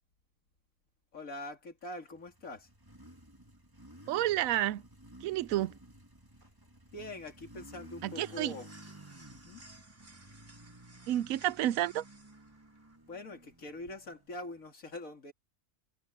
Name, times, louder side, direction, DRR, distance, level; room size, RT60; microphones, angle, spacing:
voice 1, 1.1-2.7 6.9-8.7 9.3-9.6 13.1-15.3, left 2 dB, 80° left, 3.2 m, -44 dB
Motorcycle, 2.0-14.6, right 1 dB, 15° right, 2.2 m, -54 dB
voice 2, 4.1-4.8 5.2-5.7 8.0-8.5 11.1-12.0, right 13 dB, 85° right, 1.0 m, -30 dB
sound 1, 5.9-14.4, right 2 dB, 60° right, 5.3 m, -59 dB
omnidirectional pair, 1.4 m